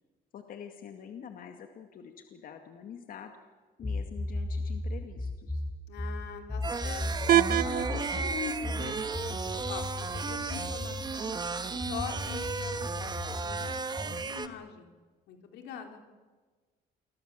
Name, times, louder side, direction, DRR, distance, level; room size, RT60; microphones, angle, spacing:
voice 1, 0.3-3.3 3.8-5.6, left 8 dB, 55° left, 5 dB, 2.2 m, -46 dB
sound 1, 3.8-11.1 11.8-14.3, left 2 dB, 15° left, 1.7 m, -36 dB
voice 2, 5.9-7.3 7.6-12.7 13.0-13.7 13.9-14.9 15.3-16.0, left 7 dB, 80° left, 5 dB, 3.8 m, -42 dB
sound 2, 6.6-14.5, right 4 dB, 25° right, 1.5 m, -35 dB
sound 3, 7.3-13.3, right 12 dB, 60° right, 1.1 m, -33 dB
28.5 x 21.5 x 7.6 m, 1.4 s
cardioid pair, 110°, 17 cm